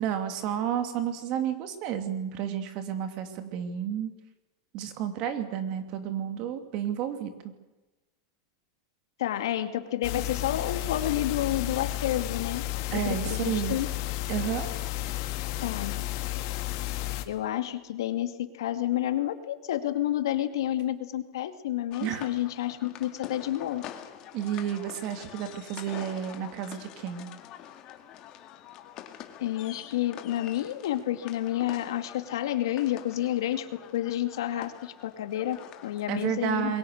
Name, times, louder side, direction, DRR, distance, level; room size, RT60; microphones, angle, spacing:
voice 1, 0.0-4.1 4.7-7.5 12.9-13.8 14.3-14.7 22.0-22.3 24.3-27.3 36.1-36.8, right 9 dB, 35° right, 8 dB, 2.7 m, -31 dB
voice 2, 9.2-12.6 12.9-13.9 15.6-16.0 17.3-23.8 29.4-33.7 33.9-36.7, left 12 dB, 85° left, 9 dB, 2.3 m, -30 dB
sound 1, 10.0-17.2, left 16 dB, 50° left, 2.0 m, -32 dB
sound 2, 21.9-36.1, left 11 dB, 30° left, 2.1 m, -46 dB
27.5 x 22.5 x 6.7 m, 1.1 s
supercardioid pair, 170°, 2 cm